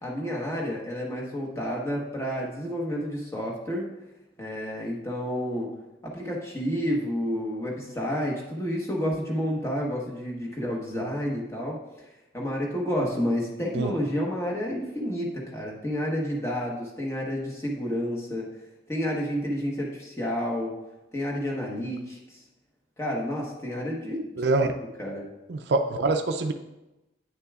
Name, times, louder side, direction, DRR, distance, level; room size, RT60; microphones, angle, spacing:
voice 1, 0.0-3.9 4.4-5.7 6.0-11.8 12.3-18.5 18.9-20.7 21.1-22.4 23.0-24.3 25.0-25.3, equal, 15° left, -3 dB, 1.2 m, -30 dB
voice 2, 24.4-24.7 25.5-26.5, right 3 dB, 75° right, 6 dB, 0.4 m, -24 dB
9.1 x 6.7 x 2.4 m, 1.0 s
head